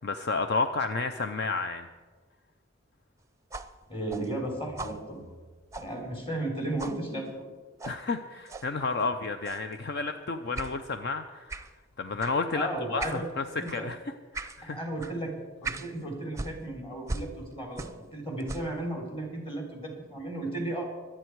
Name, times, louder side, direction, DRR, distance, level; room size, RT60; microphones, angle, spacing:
voice 1, 0.0-1.9 7.8-11.7 12.0-14.8, left 4 dB, 55° left, 8 dB, 0.6 m, -31 dB
sound 1, 3.5-6.5 6.8-7.0 7.8-8.0 8.5-8.7 9.4-9.7 10.5-10.7 11.5-11.7 12.2-12.4 13.0-13.2 13.6-13.8 14.3-14.6 15.0-15.1 15.6-15.9 16.3-18.1 18.4-18.8, right 3 dB, 15° right, 0.6 m, -39 dB
voice 2, 3.9-5.2 5.8-7.5 12.5-13.3 13.6-13.9 14.6-15.3 15.6-20.9, right 1 dB, 25° left, 1 dB, 3.4 m, -34 dB
23.5 x 8.9 x 4.7 m, 1.4 s
head